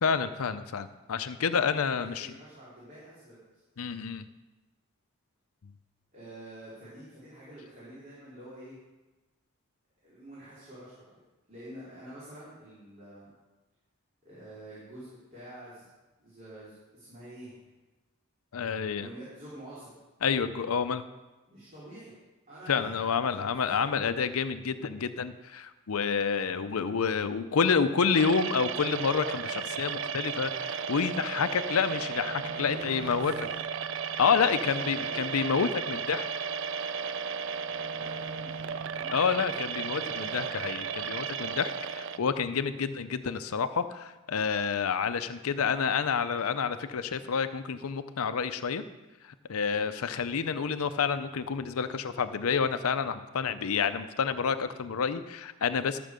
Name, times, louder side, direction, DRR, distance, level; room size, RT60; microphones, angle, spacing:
voice 1, 0.0-2.3 3.8-4.3 18.5-19.1 20.2-21.0 22.7-33.3 34.2-36.3 39.1-48.8 49.2-56.0, left 6 dB, 90° left, 11 dB, 0.6 m, -29 dB
voice 2, 2.0-3.6 6.1-8.8 10.0-11.2 11.5-13.3 14.2-15.9 16.2-17.6 19.0-19.9 21.5-22.1 22.5-23.9 32.5-33.6 34.4-35.3 37.9-39.6 40.0-40.5, right 1 dB, 35° right, -10 dB, 3.8 m, -47 dB
sound 1, 28.1-42.2, right 6 dB, 60° right, 0.4 m, -34 dB
13.0 x 6.0 x 6.7 m, 1.1 s
head